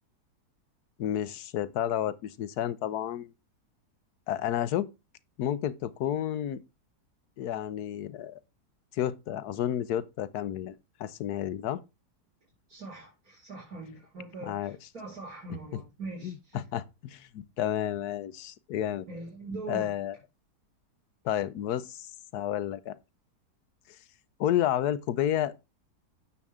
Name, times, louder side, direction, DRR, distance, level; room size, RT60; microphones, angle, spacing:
voice 1, 1.0-3.3 4.3-4.9 5.4-6.6 7.4-8.4 8.9-10.7 11.0-11.8 14.5-14.8 15.7-15.8 16.2-19.1 19.7-20.2 21.2-22.1 22.3-23.0 24.4-25.6, left 11 dB, 80° left, 1.3 m, -31 dB
voice 2, 12.7-16.6 19.1-19.9, right 3 dB, 65° right, 5.4 m, -42 dB
9.6 x 7.2 x 3.6 m
omnidirectional pair, 1.7 m